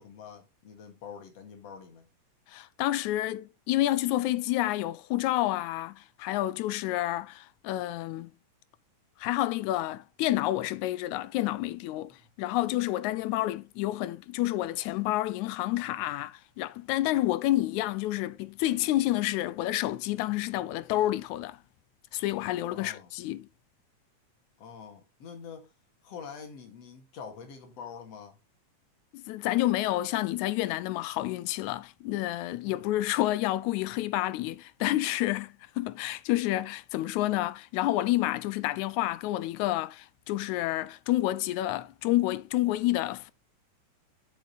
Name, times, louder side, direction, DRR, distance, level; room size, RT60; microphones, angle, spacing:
voice 1, 0.0-2.1 12.2-12.3 22.6-23.1 24.6-25.7 26.0-28.4 32.6-32.9, left 6 dB, 60° left, 2.9 m, -45 dB
voice 2, 2.5-8.3 9.2-21.6 22.1-23.5 29.1-43.3, left 15 dB, 85° left, 2.0 m, -29 dB
7.5 x 6.8 x 3.9 m
omnidirectional pair, 3.4 m